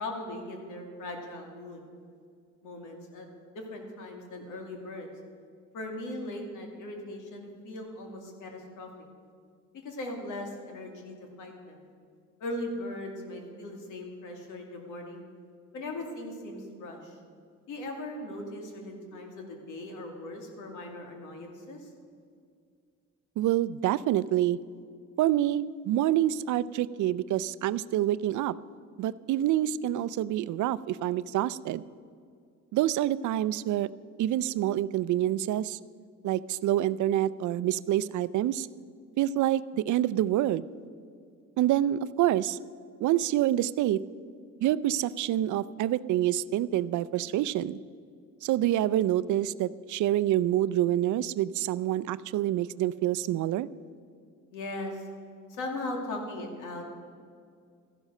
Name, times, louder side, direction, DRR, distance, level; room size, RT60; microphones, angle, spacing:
voice 1, 0.0-1.8 2.6-3.3 3.5-5.1 5.7-8.9 9.8-11.8 12.4-15.2 15.7-17.2 17.7-21.9 54.5-55.0 55.5-56.8, left 1 dB, 85° left, 2 dB, 2.5 m, -39 dB
voice 2, 23.4-24.6 25.2-28.5 29.0-31.8 32.7-33.9 34.2-35.8 36.2-38.7 39.2-40.6 41.6-42.6 43.0-44.0 44.6-47.8 48.4-53.7, right 13 dB, 75° right, 17 dB, 0.5 m, -27 dB
14.0 x 11.5 x 6.5 m, 2.2 s
cardioid pair, 90°, 30 cm